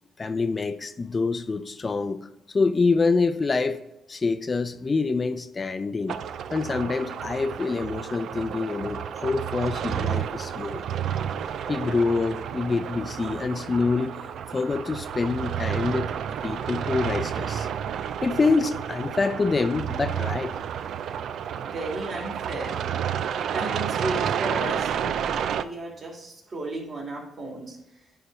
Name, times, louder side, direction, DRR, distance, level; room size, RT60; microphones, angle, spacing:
voice 1, 0.2-3.8 4.1-6.2 6.5-10.8 11.7-14.2 14.5-16.1 16.4-17.7 18.2-20.6, left 4 dB, 35° left, 10 dB, 0.5 m, -26 dB
sound 1, 6.1-25.6, right 8 dB, 70° right, 0.4 m, -31 dB
voice 2, 21.6-22.8 23.5-27.8, right 2 dB, 45° right, -2 dB, 2.9 m, -34 dB
9.4 x 3.4 x 5.2 m, 0.89 s
supercardioid pair, 75°, 0 cm